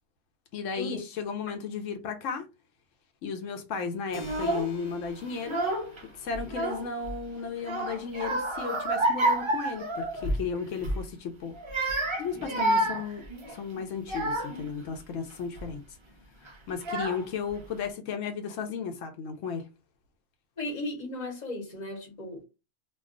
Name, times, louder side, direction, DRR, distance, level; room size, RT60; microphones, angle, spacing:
voice 1, 0.5-2.5 3.2-5.6 6.1-11.6 12.2-15.8 16.4-19.7, left 5 dB, 85° left, 1.0 m, -34 dB
Keyboard (musical), 4.1-12.3, left 1 dB, 60° left, 1.2 m, -51 dB
Child speech kid speaking / Crying sobbing, 4.2-4.7 5.3-6.0 6.3-7.1 7.6-10.5 10.8-11.0 11.5-14.7 15.3-15.7 16.4-16.5 16.8-17.5, right 1 dB, 40° right, 0.4 m, -29 dB
voice 2, 20.6-22.5, left 2 dB, 40° left, 1.1 m, -36 dB
2.3 x 2.3 x 3.6 m
omnidirectional pair, 1.3 m